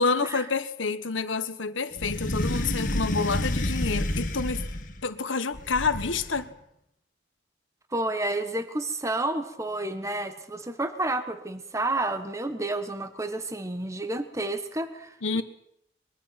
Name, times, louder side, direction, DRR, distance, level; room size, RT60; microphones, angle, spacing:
voice 1, 0.0-4.6 5.0-6.5 15.2-15.4, left 4 dB, 90° left, 1.4 m, -28 dB
sound 1, 2.0-5.0 5.5-6.4, left 1 dB, 45° left, 1.8 m, -29 dB
voice 2, 7.9-15.4, right 2 dB, 15° right, 1.2 m, -30 dB
23.5 x 22.0 x 5.9 m
head